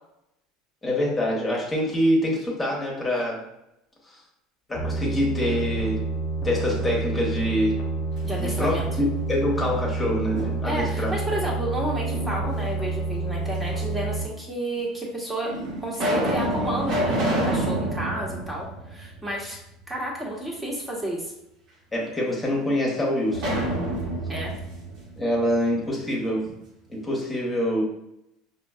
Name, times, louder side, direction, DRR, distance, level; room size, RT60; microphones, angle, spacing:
voice 1, 0.8-3.5 4.0-4.2 4.7-6.1 6.4-7.9 8.4-11.1 21.9-23.6 25.2-26.6 26.9-27.8, left 1 dB, 20° left, -2 dB, 1.2 m, -25 dB
sound 1, 4.7-14.2, right 3 dB, 45° left, 0.8 m, -29 dB
voice 2, 8.2-8.9 10.6-15.5 15.8-19.6 19.9-21.3 24.3-24.6, right 1 dB, 15° right, -3 dB, 1.2 m, -31 dB
sound 2, 8.2-9.1 9.6-10.9 12.1-12.9 13.8-13.9 14.8-14.9 15.5-19.6 19.9-20.0 23.3-26.1, right 1 dB, 55° right, 1.2 m, -29 dB
5.0 x 2.7 x 2.4 m, 0.84 s
hypercardioid pair, 75°, 0 cm